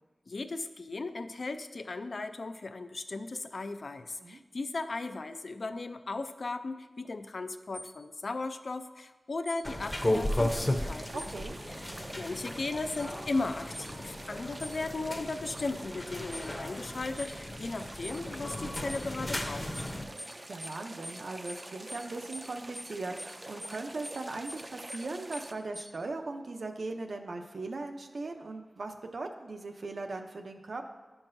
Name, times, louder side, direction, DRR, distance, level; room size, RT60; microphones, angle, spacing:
voice 1, 0.3-11.3 11.7-11.8 12.2-19.7, left 3 dB, 60° left, 10 dB, 0.4 m, -36 dB
sound 1, 7.7-7.9 9.4-9.6 11.2-11.3 12.9-13.0 13.7-13.9 14.6-14.8 15.4-15.6 16.3-16.5 17.2-17.3 18.0-18.2 18.9-19.0 19.7-19.9 20.2-20.3 20.6-20.8 21.0-21.2 21.4-21.6 21.9-22.0 22.3-22.5 22.7-22.9 23.2-23.3 23.6-23.8 24.0-24.2 24.4-24.6 24.9-25.0 25.3-25.5 25.7-25.9, equal, 85° right, 1.0 m, -43 dB
sound 2, 9.6-20.1, left 1 dB, 20° left, 0.7 m, -35 dB
sound 3, 9.8-25.5, right 1 dB, 30° right, 0.4 m, -47 dB
voice 2, 11.1-11.6 20.5-30.8, right 3 dB, 70° right, 4 dB, 0.6 m, -39 dB
10.5 x 5.9 x 2.6 m, 1.2 s
wide cardioid pair, 85°, 0 cm